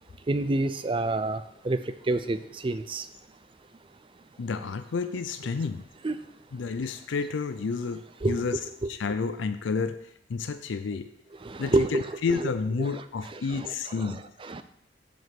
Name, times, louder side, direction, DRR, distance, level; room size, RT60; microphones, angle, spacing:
voice 1, 0.3-1.8 2.1-2.4 2.6-3.0 6.0-6.2 8.2-8.9 11.4-12.5 12.8-12.9 13.2-14.6, right 2 dB, 30° right, 11 dB, 0.4 m, -29 dB
voice 2, 4.4-5.8 6.5-8.6 8.9-10.0 10.3-11.1 11.6-14.3, left 5 dB, 85° left, 10 dB, 0.4 m, -30 dB
7.8 x 5.2 x 5.9 m, 0.75 s
head